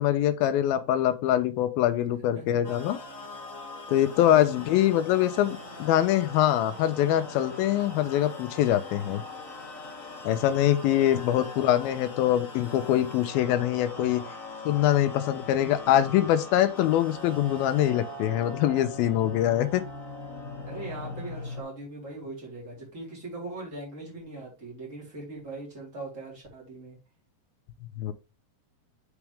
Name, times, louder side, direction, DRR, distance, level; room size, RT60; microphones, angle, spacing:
voice 1, 0.0-3.0 3.9-9.2 10.2-14.2 14.7-19.8 28.0-28.1, left 12 dB, 85° left, 2.6 m, -24 dB
voice 2, 2.2-2.6 4.2-4.6 11.3-11.4 14.0-14.3 20.6-27.0, right 2 dB, 20° right, 3.9 m, -41 dB
sound 1, 2.6-21.6, left 2 dB, 30° left, 1.8 m, -41 dB
7.1 x 6.0 x 3.4 m
omnidirectional pair, 4.1 m